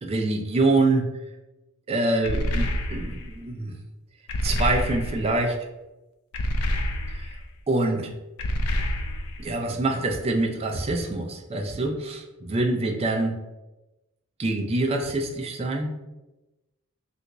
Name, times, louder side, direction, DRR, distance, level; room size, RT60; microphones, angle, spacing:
voice 1, 0.0-1.1 1.9-3.8 4.4-5.6 7.1-7.3 7.7-8.1 9.4-13.4 14.4-15.9, right 2 dB, 30° right, 3 dB, 0.4 m, -25 dB
sound 1, 2.2-3.3 4.3-5.4 6.3-7.4 8.4-9.5, left 1 dB, 90° left, 0.4 m, -27 dB
3.3 x 2.6 x 3.0 m, 1.0 s
head